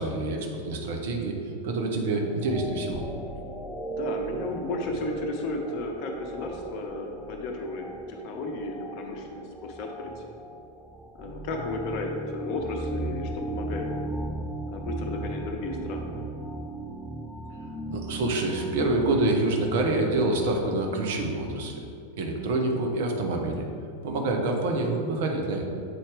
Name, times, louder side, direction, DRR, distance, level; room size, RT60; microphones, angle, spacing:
voice 1, 0.0-1.4 1.6-3.0 17.9-21.8 22.2-23.7 24.0-25.6, right 2 dB, 55° right, 2 dB, 0.8 m, -27 dB
sound 1, 2.4-21.8, right 2 dB, ahead, 0.4 m, -37 dB
voice 2, 3.9-10.3 11.1-13.9 14.7-16.2, left 2 dB, 45° left, 3 dB, 0.8 m, -34 dB
7.8 x 4.3 x 3.3 m, 2.4 s
figure-of-eight pair, 90°, 0 cm